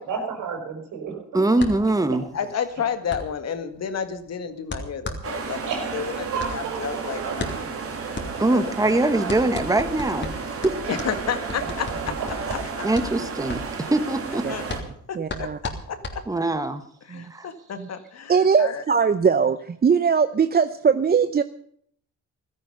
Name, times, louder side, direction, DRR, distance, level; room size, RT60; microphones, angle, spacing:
voice 1, 0.0-1.3 5.7-7.4 10.9-11.0 11.6-12.5, right 6 dB, 80° right, 4 dB, 5.1 m, -33 dB
voice 2, 1.3-2.2 8.4-10.3 10.6-10.8 12.8-14.4 16.3-16.8 17.3-17.5, right 2 dB, 10° right, 10 dB, 1.5 m, -22 dB
sound 1, 1.6-16.7, left 2 dB, 40° left, 3.2 m, -36 dB
voice 3, 2.3-5.6 5.9-6.1 6.5-7.2 8.4-8.7 10.9-12.3 14.5-14.6 15.1-16.3 17.1-18.3 18.6-18.8, left 7 dB, 55° left, 9 dB, 2.0 m, -31 dB
sound 2, 5.2-14.8, right 5 dB, 50° right, 3.2 m, -32 dB
voice 4, 15.1-15.6 17.1-17.3 17.8-17.9 18.3-21.4, right 6 dB, 30° right, 11 dB, 0.7 m, -20 dB
16.0 x 13.5 x 5.5 m, 0.62 s
cardioid pair, 90°, 30 cm